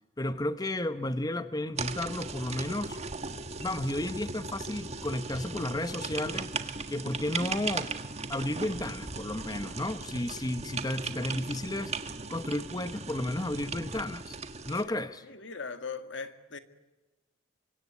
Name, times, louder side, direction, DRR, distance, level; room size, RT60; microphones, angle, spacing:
voice 1, 0.2-3.0 3.6-7.9 8.3-14.4 14.6-15.2, left 1 dB, 20° left, 0.9 m, -33 dB
sound 1, 1.8-14.8, right 4 dB, 35° right, 1.7 m, -37 dB
voice 2, 15.2-16.6, left 4 dB, 75° left, 1.9 m, -39 dB
25.5 x 24.0 x 9.5 m
head